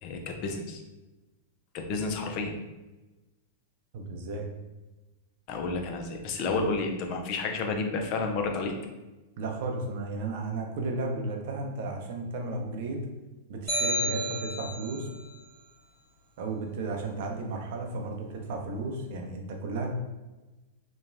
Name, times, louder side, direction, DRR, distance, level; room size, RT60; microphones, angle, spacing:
voice 1, 0.0-0.8 1.7-2.5 5.5-8.7, left 3 dB, 45° left, 3 dB, 0.4 m, -31 dB
voice 2, 3.9-4.5 6.4-6.6 9.4-13.0 13.5-15.1 16.4-19.9, right 2 dB, 60° right, 2 dB, 0.5 m, -34 dB
sound 1, 13.7-15.1, right 1 dB, 15° left, 1.2 m, -30 dB
3.0 x 2.2 x 2.5 m, 1.1 s
hypercardioid pair, 110°, 0 cm